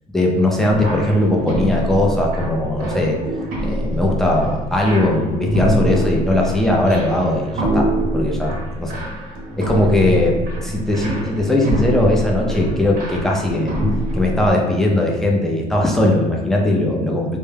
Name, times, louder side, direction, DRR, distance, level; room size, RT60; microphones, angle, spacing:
voice 1, 0.1-3.2 3.6-9.0 9.6-10.4 10.6-13.8 14.1-17.4, left 1 dB, ahead, -2 dB, 0.5 m, -19 dB
sound 1, 0.7-14.5, equal, 60° right, 0.8 m, -24 dB
2.2 x 2.1 x 3.2 m, 1.1 s
cardioid pair, 110°, 17 cm